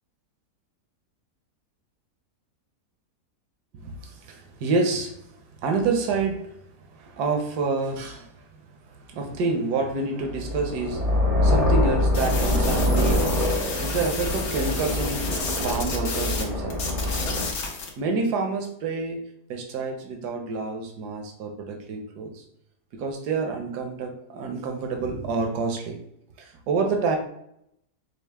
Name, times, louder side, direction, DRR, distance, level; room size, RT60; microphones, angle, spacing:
voice 1, 3.7-5.2 5.6-6.5 6.9-8.6 8.9-11.2 11.4-13.3 13.8-16.8 18.0-19.2 19.5-22.4 22.9-26.0 26.4-27.2, right 4 dB, 80° right, 3 dB, 1.3 m, -28 dB
sound 1, 10.3-17.5, left 1 dB, 35° right, 0.6 m, -24 dB
sound 2, 12.1-16.5 16.7-17.9, left 4 dB, 60° left, 1.0 m, -31 dB
5.4 x 2.1 x 3.4 m, 0.76 s
omnidirectional pair, 1.7 m